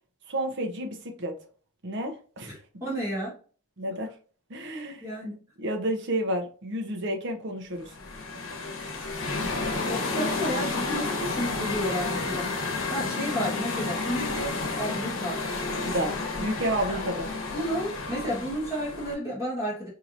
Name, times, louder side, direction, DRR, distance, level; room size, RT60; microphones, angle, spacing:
voice 1, 0.3-1.3 1.8-2.5 3.8-4.1 4.5-5.1 5.6-7.9 15.8-17.3, right 1 dB, 60° right, 0.8 m, -30 dB
voice 2, 2.4-3.4 5.0-5.4 9.9-15.4 16.9-17.0 17.5-19.9, equal, 15° right, 1.3 m, -32 dB
sound 1, 7.8-19.1, left 3 dB, 80° left, 0.9 m, -31 dB
4.6 x 2.8 x 2.5 m
head